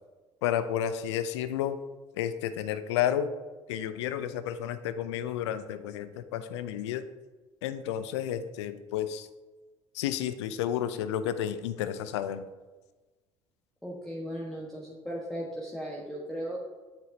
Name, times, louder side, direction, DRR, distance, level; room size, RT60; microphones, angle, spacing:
voice 1, 0.4-1.8 2.1-3.3 3.7-7.0 7.6-9.3 9.9-12.5, left 10 dB, 80° left, 12 dB, 0.4 m, -31 dB
voice 2, 13.8-16.6, equal, 5° left, -5 dB, 1.3 m, -37 dB
7.5 x 6.0 x 2.7 m, 1.2 s
hypercardioid pair, 60°, 14 cm